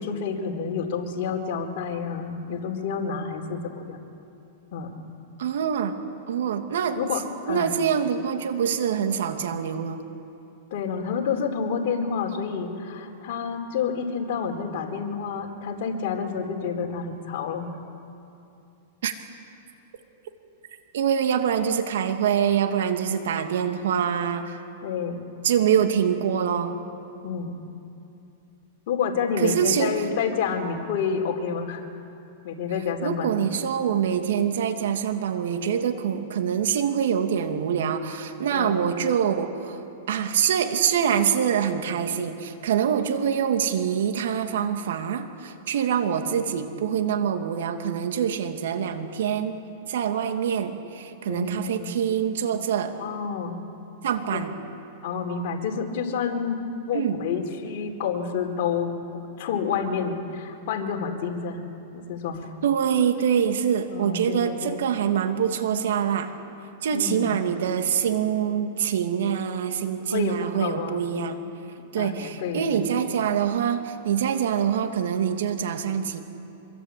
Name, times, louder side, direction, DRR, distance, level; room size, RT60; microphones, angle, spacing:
voice 1, 0.0-4.0 4.7-4.9 7.0-7.8 10.7-17.7 24.8-25.2 27.2-27.5 28.9-31.8 32.4-33.3 38.5-38.8 51.3-51.9 53.0-53.6 54.3-54.4 55.0-56.6 56.9-58.9 59.4-61.6 61.9-62.5 63.9-64.9 66.9-67.4 70.1-71.1 72.0-72.8, left 6 dB, 60° left, 1 dB, 4.4 m, -29 dB
voice 2, 5.4-6.0 6.3-7.0 7.5-10.0 19.0-19.1 20.9-24.6 25.4-26.8 29.4-30.0 33.0-39.8 40.1-49.6 49.9-52.9 54.0-54.5 56.9-57.2 62.6-66.3 66.8-71.4 71.9-76.2, right 8 dB, 75° right, 6 dB, 2.6 m, -25 dB
26.0 x 23.0 x 8.7 m, 2.7 s
hypercardioid pair, 135°, 0 cm